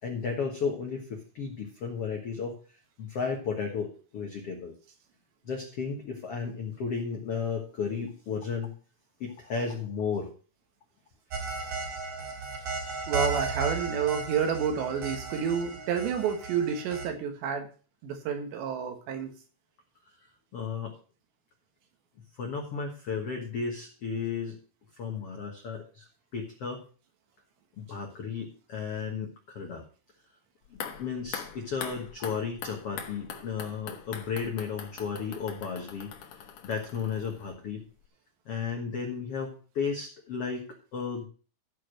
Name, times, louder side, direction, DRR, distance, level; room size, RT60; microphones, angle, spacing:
voice 1, 0.0-2.6 3.0-4.7 5.4-8.7 9.2-10.3 11.4-11.5 20.1-20.2 20.5-20.9 22.3-24.6 25.0-26.1 26.3-26.8 27.8-29.8 30.7-36.1 36.4-37.8 38.4-41.3, left 5 dB, 80° left, 1 dB, 1.3 m, -34 dB
sound 1, 11.3-17.1, right 4 dB, 55° right, 3.1 m, -35 dB
voice 2, 13.1-17.7 18.0-19.4, right 7 dB, 80° right, 5 dB, 3.8 m, -29 dB
sound 2, 30.6-37.8 38.0-38.1, left 7 dB, 65° left, 2.1 m, -42 dB
14.0 x 4.9 x 6.4 m, 0.38 s
omnidirectional pair, 5.0 m